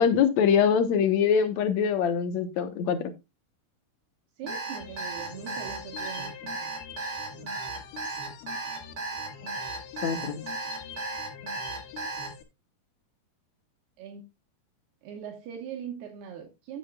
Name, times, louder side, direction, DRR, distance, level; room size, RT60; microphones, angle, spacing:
voice 1, 0.0-3.1 10.0-10.4, left 7 dB, 75° left, 9 dB, 1.6 m, -23 dB
sound 1, 4.4-12.4, left 8 dB, 60° left, 2.7 m, -44 dB
voice 2, 4.4-6.7 7.3-7.5 9.4-9.5 14.0-14.3 15.0-16.8, right 8 dB, 75° right, 1 dB, 3.3 m, -41 dB
Alarm, 4.5-12.3, right 3 dB, 35° right, 3.4 m, -35 dB
15.5 x 7.1 x 2.3 m, 0.23 s
omnidirectional pair, 4.8 m